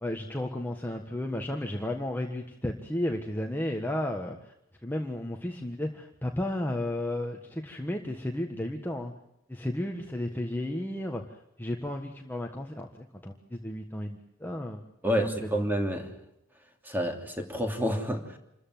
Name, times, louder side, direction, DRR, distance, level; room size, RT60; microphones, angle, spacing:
voice 1, 0.0-4.5 4.8-9.1 9.5-15.5, left 1 dB, 10° left, 2 dB, 1.5 m, -33 dB
voice 2, 15.0-16.1 16.8-18.4, equal, 10° right, 4 dB, 2.9 m, -29 dB
27.5 x 14.5 x 9.3 m, 0.83 s
head